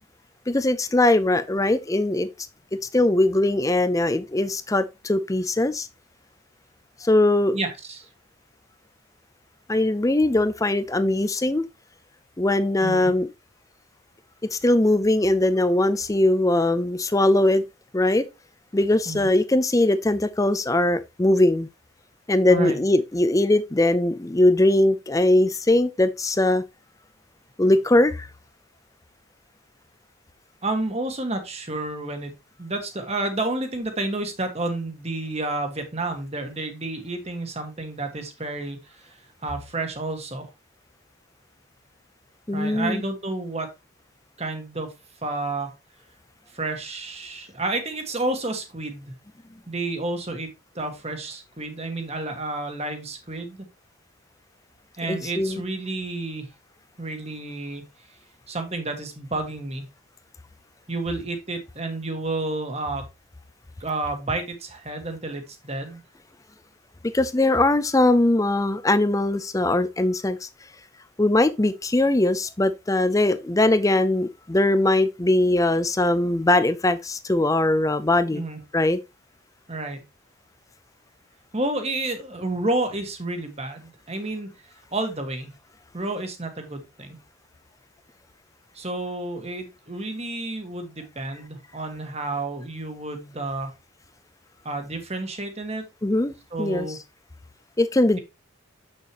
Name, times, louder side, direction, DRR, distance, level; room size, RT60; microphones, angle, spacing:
voice 1, 0.5-2.3 2.9-5.9 7.0-7.6 9.7-11.6 12.4-13.3 14.5-17.6 17.9-18.3 18.7-21.7 22.3-26.6 27.6-28.3 42.5-43.0 55.1-55.6 67.1-70.5 71.2-78.4 78.7-79.0 96.0-97.0 97.8-98.2, left 1 dB, 15° left, 0.5 m, -21 dB
voice 2, 7.5-8.1 12.8-13.1 19.1-19.3 22.5-22.8 30.6-32.3 32.6-39.2 39.4-40.5 42.5-43.7 44.4-44.9 45.2-45.7 46.5-49.1 49.7-50.5 50.7-53.6 55.0-56.5 57.0-57.8 58.5-59.9 60.9-63.0 63.8-66.0 78.3-78.6 79.7-80.0 81.5-84.5 84.9-85.5 85.9-87.2 88.7-93.7 94.6-95.8 96.5-97.0, right 2 dB, 30° right, 1.6 m, -30 dB
7.5 x 6.5 x 3.0 m
head